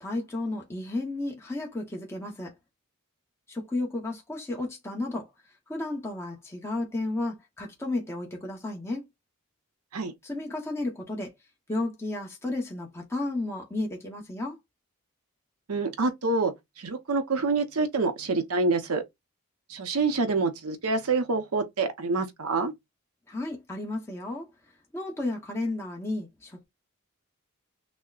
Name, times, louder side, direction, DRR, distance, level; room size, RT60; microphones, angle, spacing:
voice 1, 0.0-2.5 3.5-5.3 5.7-9.1 10.2-11.3 11.7-14.6 23.3-24.5 24.9-26.6, left 2 dB, 10° left, 0.8 m, -33 dB
voice 2, 15.7-19.0 19.7-22.7, right 3 dB, 80° right, 0.8 m, -27 dB
6.2 x 2.1 x 2.4 m
head